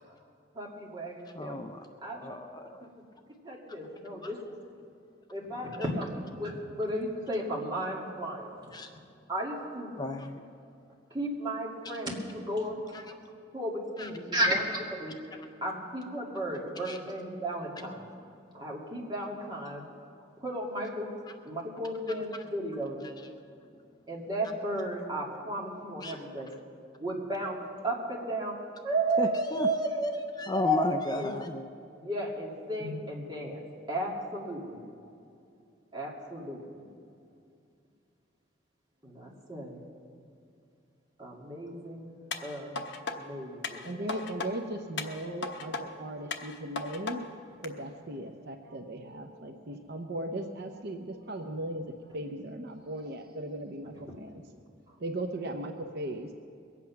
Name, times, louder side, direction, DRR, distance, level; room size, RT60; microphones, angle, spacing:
voice 1, 0.5-1.6 2.0-2.3 3.4-4.5 5.3-8.7 9.3-10.0 11.1-13.2 13.5-15.2 15.6-18.1 18.5-19.8 20.4-21.1 21.4-23.0 24.1-26.5 27.0-28.6 28.8-30.3 30.5-31.3 31.9-34.8 35.9-36.9 39.0-39.8 41.2-42.1 42.4-42.8 43.1-44.2 53.8-54.2, right 1 dB, 25° right, -3 dB, 2.4 m, -34 dB
voice 2, 1.3-1.9 2.2-2.9 4.2-4.3 8.7-8.9 10.0-10.4 12.9-13.0 14.0-14.1 15.3-15.5 16.9-17.0 26.0-26.2 29.2-29.7 30.4-31.7, left 1 dB, 20° left, 6 dB, 0.5 m, -34 dB
sound 1, 42.3-43.2 43.6-44.5 45.0-45.8 46.3-47.2 47.6-47.7, left 4 dB, 65° left, 1.0 m, -36 dB
voice 3, 43.8-47.3 47.6-54.4 55.0-56.3, right 1 dB, 55° right, 5 dB, 0.8 m, -37 dB
22.0 x 8.5 x 5.8 m, 2.5 s
head